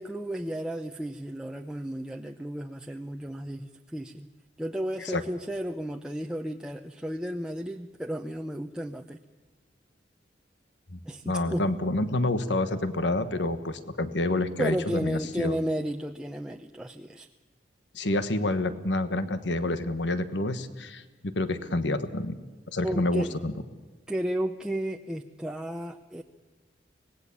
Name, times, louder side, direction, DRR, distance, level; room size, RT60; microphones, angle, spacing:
voice 1, 0.0-4.3 4.6-9.2 11.0-11.6 14.6-17.3 22.8-23.3 24.1-26.2, equal, 5° right, 3 dB, 0.7 m, -33 dB
voice 2, 11.2-15.6 17.9-22.3 22.7-23.5, left 2 dB, 80° left, 11 dB, 1.3 m, -28 dB
25.5 x 19.5 x 7.2 m, 1.3 s
head